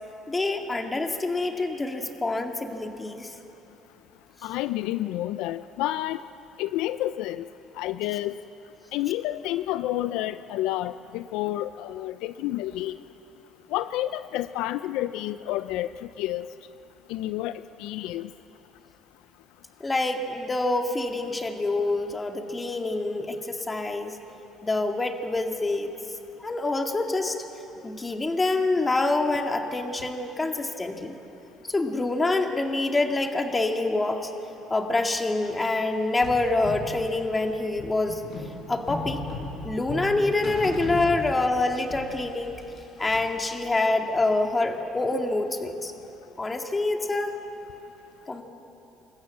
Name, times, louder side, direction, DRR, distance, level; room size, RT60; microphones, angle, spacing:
voice 1, 0.3-3.3 19.8-24.2 24.6-25.9 26.4-27.4 27.8-31.1 31.7-34.3 34.7-38.2 38.7-39.2 39.6-42.5 43.0-45.9 46.4-47.3 48.3-48.4, left 2 dB, 20° left, 4 dB, 2.0 m, -26 dB
voice 2, 4.4-6.2 6.6-7.5 7.8-8.3 8.9-13.0 13.7-16.5 17.1-17.5 17.8-18.3, left 14 dB, 80° left, 14 dB, 0.4 m, -29 dB
sound 1, 36.2-41.7 41.9-43.5, left 2 dB, 50° left, 5.4 m, -36 dB
26.0 x 14.5 x 7.4 m, 3.0 s
supercardioid pair, 90°, 0 cm